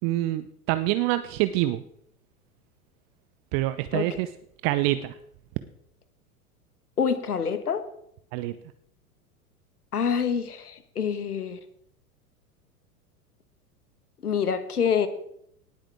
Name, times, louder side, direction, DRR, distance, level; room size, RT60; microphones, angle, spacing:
voice 1, 0.0-1.8 3.5-4.3 4.6-5.2 8.3-8.6, right 16 dB, 30° right, 12 dB, 0.5 m, -26 dB
voice 2, 7.0-7.9 9.9-11.6 14.2-15.1, left 7 dB, 75° left, 11 dB, 1.4 m, -26 dB
18.0 x 8.7 x 3.5 m, 0.73 s
figure-of-eight pair, 90°, 45 cm